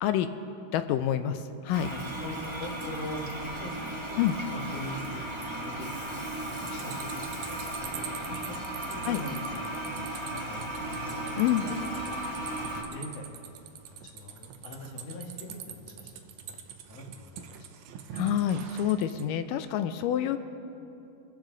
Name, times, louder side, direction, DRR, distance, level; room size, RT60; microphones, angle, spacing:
voice 1, 0.7-1.9 4.2-4.4 9.1-9.2 11.4-11.6 18.1-20.4, left 11 dB, 80° left, 10 dB, 2.1 m, -27 dB
Toilet flush, 1.7-12.8, right 1 dB, 15° right, 0.8 m, -36 dB
voice 2, 1.9-3.7 4.1-4.2 4.5-6.0 6.5-8.1 8.5-8.6 8.9-11.3 11.6-13.5 13.9-17.7, left 1 dB, 50° left, -2 dB, 2.5 m, -43 dB
sound 1, 6.6-19.3, right 8 dB, 80° right, 1.6 m, -44 dB
26.0 x 14.0 x 3.9 m, 2.7 s
omnidirectional pair, 4.2 m